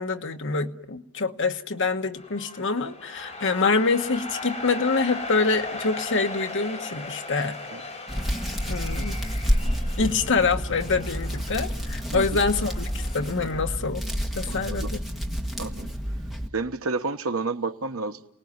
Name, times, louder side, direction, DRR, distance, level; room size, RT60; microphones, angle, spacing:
voice 1, 0.0-7.6 8.7-9.2 10.0-14.0 14.3-14.9, left 4 dB, 55° left, 6 dB, 1.3 m, -26 dB
sound 1, 2.1-13.7, left 2 dB, 30° left, 6.2 m, -38 dB
Hands, 8.1-16.5, equal, ahead, 1.7 m, -29 dB
voice 2, 14.5-14.9 15.6-15.9 16.5-18.2, right 3 dB, 65° right, 8 dB, 1.2 m, -30 dB
29.0 x 19.5 x 9.6 m, 0.84 s
head